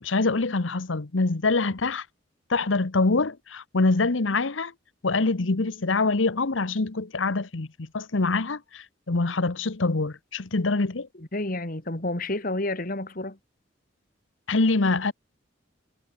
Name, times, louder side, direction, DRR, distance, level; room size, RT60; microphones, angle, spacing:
voice 1, 0.0-2.0 2.5-4.7 5.0-11.1 14.5-15.1, left 3 dB, 85° left, 1.1 m, -25 dB
voice 2, 11.2-13.4, left 2 dB, 45° left, 2.5 m, -30 dB
head